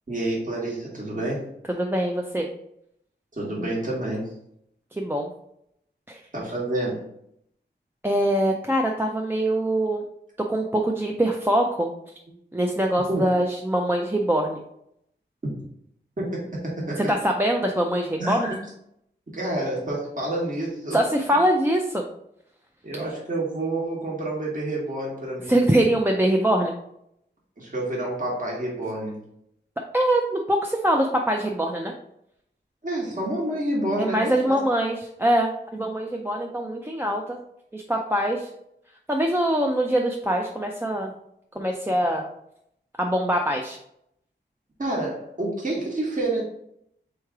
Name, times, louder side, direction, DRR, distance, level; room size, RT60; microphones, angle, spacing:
voice 1, 0.1-1.5 3.4-4.3 6.3-7.1 13.1-13.2 16.2-17.0 18.2-18.6 19.3-21.0 22.8-25.6 27.6-29.2 32.8-34.6 44.8-46.4, right 1 dB, 45° right, -5 dB, 1.4 m, -28 dB
voice 2, 1.7-2.5 5.0-5.3 6.1-6.2 8.0-10.0 10.5-11.9 12.5-14.6 17.0-18.5 20.9-22.0 25.5-26.7 29.9-31.9 34.0-37.4 37.7-38.5 39.1-41.1 41.5-42.2 43.0-43.8, right 1 dB, 10° right, 0 dB, 0.4 m, -23 dB
3.6 x 3.1 x 4.6 m, 0.75 s
wide cardioid pair, 85°, 19 cm